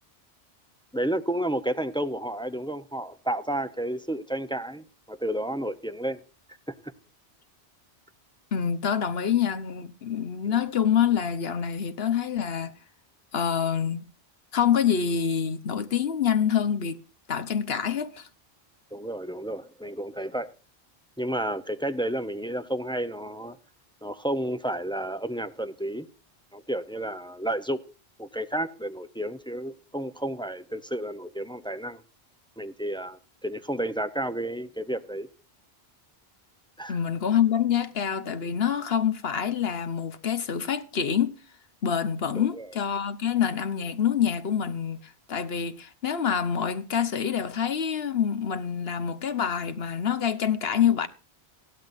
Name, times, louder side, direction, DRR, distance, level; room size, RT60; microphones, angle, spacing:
voice 1, 0.9-6.2 10.4-10.6 18.9-20.5 21.2-23.6 24.0-26.1 26.5-27.8 28.2-32.0 32.6-35.3 36.8-37.0 42.4-42.7, right 1 dB, 5° left, 0.6 m, -31 dB
voice 2, 8.5-12.7 13.3-14.1 14.5-17.0 17.3-18.3 36.9-41.4 41.8-51.1, left 8 dB, 65° left, 1.2 m, -26 dB
16.5 x 12.0 x 2.6 m
omnidirectional pair, 1.1 m